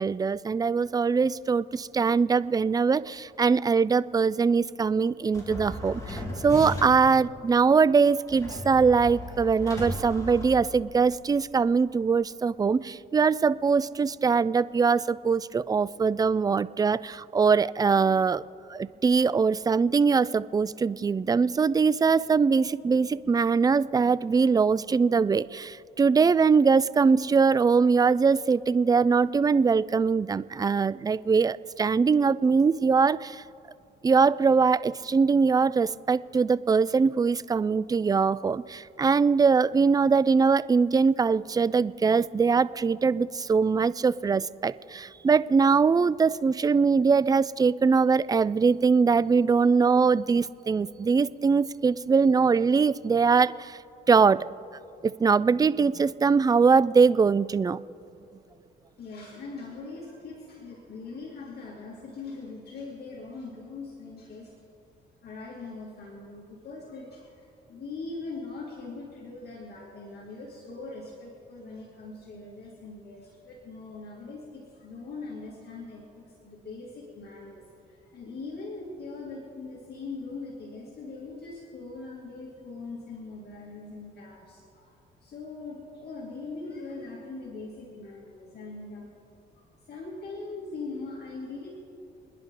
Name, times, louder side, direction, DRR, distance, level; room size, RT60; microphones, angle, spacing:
voice 1, 0.0-18.4 18.7-33.4 34.0-53.8 54.1-54.5 55.0-57.8, right 5 dB, 20° right, 18 dB, 0.3 m, -22 dB
sound 1, 5.3-7.2 8.3-11.1, equal, 15° left, 3.2 m, -36 dB
voice 2, 59.0-64.6 65.2-89.1 89.5-91.7, left 3 dB, 55° left, -4 dB, 2.6 m, -41 dB
28.0 x 10.5 x 3.8 m, 2.6 s
cardioid pair, 90°, 20 cm